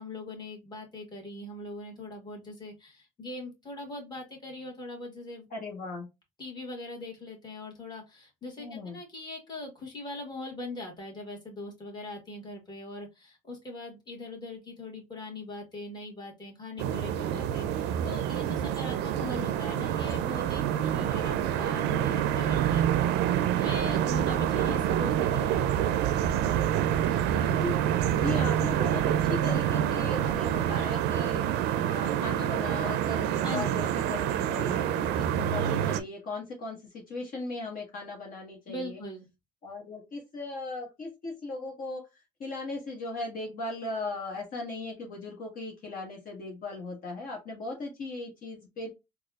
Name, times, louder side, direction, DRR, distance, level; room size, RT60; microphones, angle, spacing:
voice 1, 0.0-5.5 6.4-22.9 23.6-26.0 33.4-33.8 38.7-39.3, left 2 dB, 25° left, 0 dB, 1.6 m, -41 dB
voice 2, 5.5-6.1 8.6-9.0 27.2-31.5 31.8-39.0 39.6-42.0 42.4-48.9, left 2 dB, 55° left, 0 dB, 1.3 m, -38 dB
sound 1, 16.8-36.0, right 10 dB, 90° right, 0.4 m, -27 dB
4.0 x 2.4 x 2.3 m, 0.23 s
cardioid pair, 110°, 17 cm